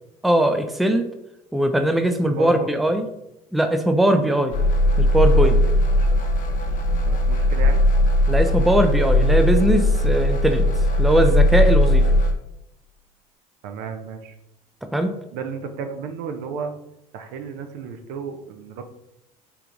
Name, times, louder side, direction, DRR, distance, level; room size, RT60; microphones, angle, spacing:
voice 1, 0.2-1.1 1.5-3.0 3.5-4.5 5.0-5.6 8.3-10.7 11.0-12.0 14.9-15.1, right 1 dB, ahead, 7 dB, 0.4 m, -20 dB
voice 2, 2.2-3.0 5.9-6.3 7.0-7.8 13.6-14.4 15.3-16.7 17.1-18.8, right 6 dB, 65° right, 7 dB, 0.6 m, -33 dB
sound 1, 4.5-12.3, left 1 dB, 45° left, 0.7 m, -18 dB
4.6 x 3.4 x 2.5 m, 0.88 s
hypercardioid pair, 65°, 19 cm